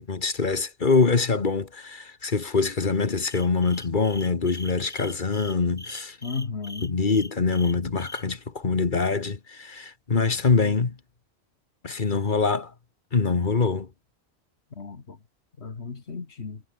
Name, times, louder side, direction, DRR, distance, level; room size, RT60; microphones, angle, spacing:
voice 1, 0.0-6.2 6.8-10.9 11.8-12.7 13.1-13.9, left 4 dB, 50° left, 1.6 m, -24 dB
sound 1, 3.2-8.2, left 1 dB, 10° left, 1.0 m, -42 dB
voice 2, 6.2-7.0 14.8-15.2 15.6-16.6, left 4 dB, 85° left, 2.2 m, -34 dB
omnidirectional pair, 1.1 m